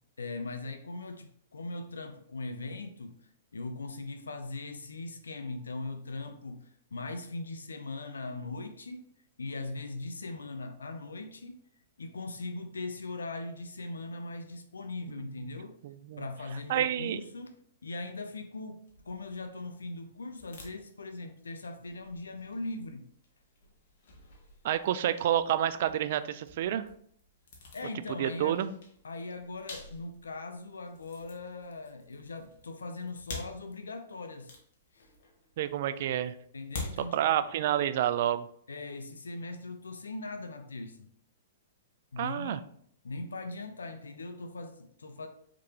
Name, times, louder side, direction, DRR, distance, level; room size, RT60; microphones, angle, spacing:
voice 1, 0.2-3.1 3.5-9.0 9.4-11.6 12.0-15.8 16.2-17.5 17.8-23.0 27.7-28.7 29.0-34.5 34.9-35.1 36.5-37.5 38.7-41.1 42.1-42.6 43.0-45.3, left 3 dB, 85° left, 7 dB, 0.5 m, -40 dB
voice 2, 15.8-16.3 16.7-17.2 24.6-26.9 28.2-28.7 35.6-36.3 37.1-38.5 42.2-42.6, right 11 dB, 55° right, 13 dB, 0.3 m, -29 dB
sound 1, 18.8-37.9, left 3 dB, 65° left, 1.4 m, -49 dB
4.8 x 3.6 x 2.8 m, 0.65 s
hypercardioid pair, 125°, 0 cm